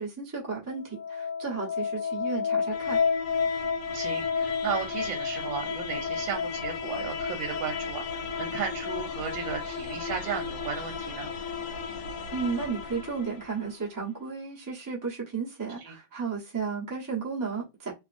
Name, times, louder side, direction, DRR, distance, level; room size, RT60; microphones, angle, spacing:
voice 1, 0.0-3.0 12.3-17.9, right 5 dB, 25° right, 0.4 m, -33 dB
sound 1, 0.8-13.8, left 5 dB, 75° left, 1.2 m, -32 dB
voice 2, 3.9-11.3 15.8-15.9, right 7 dB, 85° right, 1.3 m, -35 dB
2.8 x 2.5 x 2.5 m
omnidirectional pair, 2.1 m